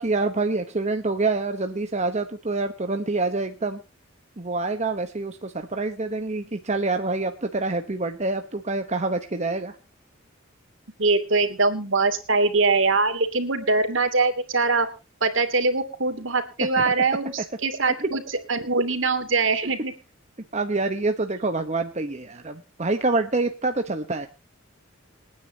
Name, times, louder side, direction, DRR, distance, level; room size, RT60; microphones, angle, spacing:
voice 1, 0.0-3.8 4.4-9.8 18.0-18.1 19.6-19.7 20.5-24.3, right 3 dB, 35° right, 6 dB, 1.1 m, -26 dB
voice 2, 11.0-14.9 15.2-18.2 18.5-19.9, right 3 dB, 65° right, 8 dB, 2.8 m, -22 dB
28.0 x 9.9 x 2.9 m, 0.32 s
head